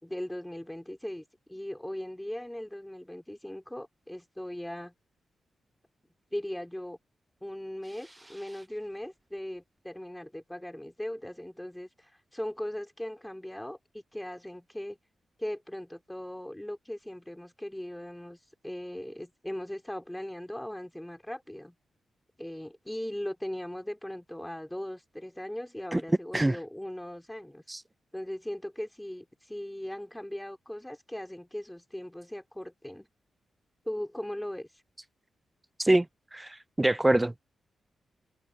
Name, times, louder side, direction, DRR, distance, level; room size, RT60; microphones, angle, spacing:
voice 1, 0.0-4.9 6.3-7.0 7.4-15.0 15.4-21.8 22.4-27.6 28.1-33.1 33.9-34.7, left 1 dB, 5° left, 3.6 m, -39 dB
voice 2, 36.3-37.4, right 1 dB, 15° right, 0.3 m, -25 dB
cardioid pair, 65°, 0 cm